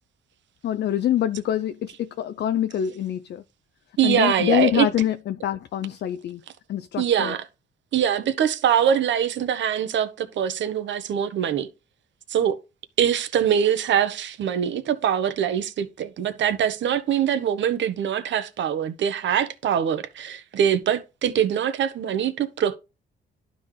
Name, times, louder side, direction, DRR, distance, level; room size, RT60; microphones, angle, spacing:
voice 1, 0.6-3.4 4.0-6.4 6.7-7.3, left 11 dB, 60° left, 0.5 m, -25 dB
voice 2, 4.0-4.9 7.0-7.5 7.9-11.7 12.3-12.6 13.0-22.8, right 9 dB, 70° right, 1.1 m, -23 dB
11.5 x 3.9 x 3.3 m
cardioid pair, 90°, 20 cm